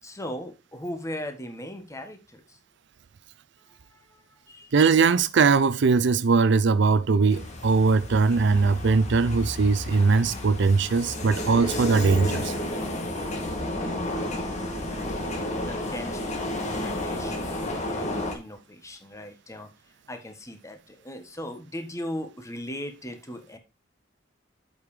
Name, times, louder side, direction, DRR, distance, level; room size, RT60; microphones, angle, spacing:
voice 1, 0.0-2.6 3.7-4.7 15.6-19.7 20.1-23.6, left 1 dB, 15° left, 1.4 m, -39 dB
voice 2, 4.7-12.5, right 4 dB, 65° right, 0.5 m, -21 dB
sound 1, 7.3-18.4, left 1 dB, 40° left, 2.1 m, -31 dB
7.9 x 5.4 x 4.9 m
head